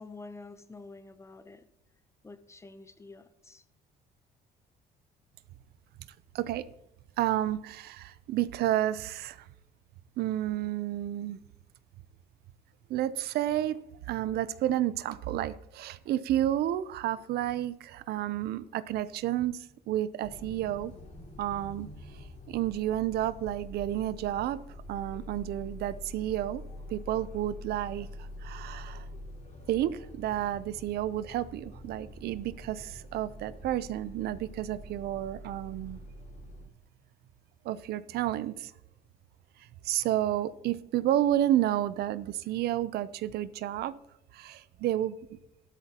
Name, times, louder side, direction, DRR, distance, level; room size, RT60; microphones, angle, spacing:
voice 1, 0.0-1.7 2.2-3.6, left 3 dB, 15° left, 12 dB, 0.7 m, -48 dB
voice 2, 7.2-9.5 10.2-11.4 12.9-20.9 21.4-21.9 22.1-24.6 24.9-26.6 26.9-28.1 28.4-29.1 29.7-36.0 37.6-38.7 39.8-43.9 44.3-45.1, right 12 dB, 70° right, 15 dB, 0.6 m, -31 dB
sound 1, 20.2-36.7, left 1 dB, 50° left, 4.6 m, -46 dB
13.0 x 12.5 x 2.9 m, 0.84 s
cardioid pair, 110°, 17 cm